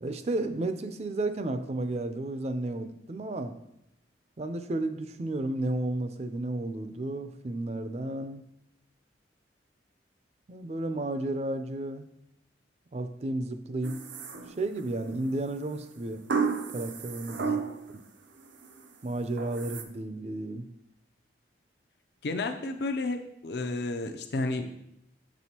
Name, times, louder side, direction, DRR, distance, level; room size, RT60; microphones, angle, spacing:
voice 1, 0.0-3.6 4.4-8.4 10.5-12.1 12.9-14.0 14.6-16.2 16.7-17.4 19.0-20.7, right 2 dB, 35° right, 9 dB, 0.4 m, -32 dB
sound 1, 13.8-14.9 16.3-18.0 18.4-18.9 19.4-19.8, right 5 dB, 80° right, 0.7 m, -32 dB
voice 2, 22.2-24.7, left 2 dB, 65° left, 6 dB, 0.5 m, -32 dB
7.3 x 6.2 x 2.8 m, 0.82 s
head